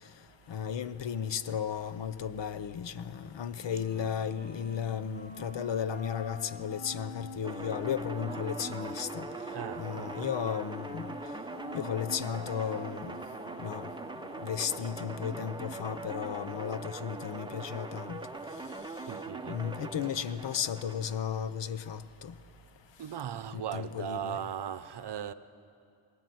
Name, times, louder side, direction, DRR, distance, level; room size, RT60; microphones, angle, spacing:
voice 1, 0.5-9.3 9.8-11.1 11.7-13.1 13.6-13.9 14.4-18.2 19.5-22.3 23.5-24.4, left 8 dB, 60° left, 0.8 m, -34 dB
Wind instrument woodwind instrument, 3.5-15.6, left 2 dB, 15° left, 2.0 m, -46 dB
sound 1, 7.4-21.2, right 3 dB, 10° right, 0.7 m, -42 dB
voice 2, 9.5-10.3 19.1-19.9 23.0-25.3, right 9 dB, 55° right, 0.8 m, -38 dB
20.0 x 18.5 x 9.3 m
wide cardioid pair, 115°, 49 cm